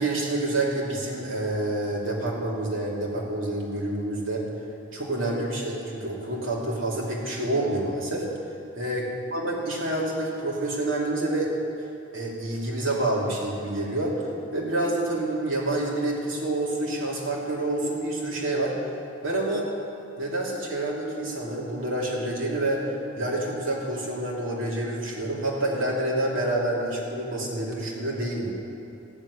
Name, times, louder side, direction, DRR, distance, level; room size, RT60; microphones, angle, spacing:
voice 1, 0.0-4.4 4.9-8.3 8.8-11.5 12.1-18.7 19.2-19.7 20.2-22.8 23.2-28.5, right 1 dB, 65° right, -3 dB, 2.9 m, -28 dB
14.5 x 7.4 x 9.8 m, 2.6 s
head